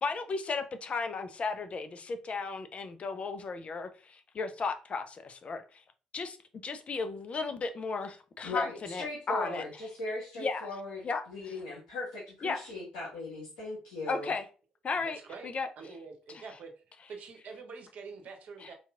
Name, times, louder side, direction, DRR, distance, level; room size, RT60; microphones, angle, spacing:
voice 1, 0.0-5.8 6.1-6.4 6.6-9.6 10.4-10.7 11.0-11.5 12.4-12.6 14.1-14.4 14.8-15.2 15.4-15.7 16.3-16.4 18.6-18.7, left 4 dB, 45° left, 8 dB, 0.6 m, -35 dB
voice 2, 8.4-14.3, left 2 dB, 85° left, -8 dB, 1.3 m, -38 dB
voice 3, 15.0-15.5 15.8-16.7 17.1-18.7, right 5 dB, 60° right, 3 dB, 0.9 m, -46 dB
4.0 x 2.9 x 2.4 m, 0.36 s
hypercardioid pair, 50°, 3 cm